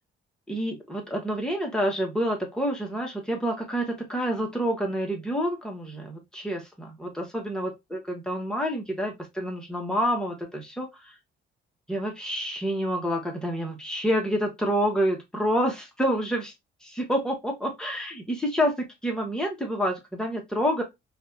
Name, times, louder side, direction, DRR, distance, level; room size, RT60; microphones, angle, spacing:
voice 1, 0.5-11.1 11.9-16.5 16.8-20.8, equal, 5° left, 1.5 m, -28 dB
4.6 x 2.7 x 2.7 m
cardioid pair, 90°, 20 cm